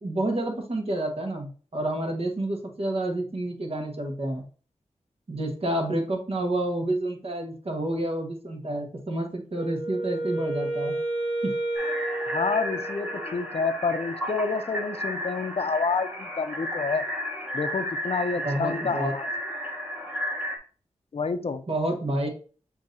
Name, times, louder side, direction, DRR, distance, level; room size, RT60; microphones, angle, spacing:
voice 1, 0.0-4.4 5.3-11.0 11.4-11.5 18.4-19.1 21.7-22.3, right 1 dB, 55° right, 2 dB, 1.2 m, -29 dB
Wind instrument woodwind instrument, 9.5-13.4, right 2 dB, 30° right, 1.8 m, -31 dB
sound 1, 11.7-20.6, equal, 10° right, 0.9 m, -33 dB
voice 2, 12.3-17.0 17.5-19.3 21.1-21.6, left 4 dB, 55° left, 10 dB, 0.5 m, -28 dB
7.1 x 2.7 x 2.6 m, 0.39 s
wide cardioid pair, 60°, 12 cm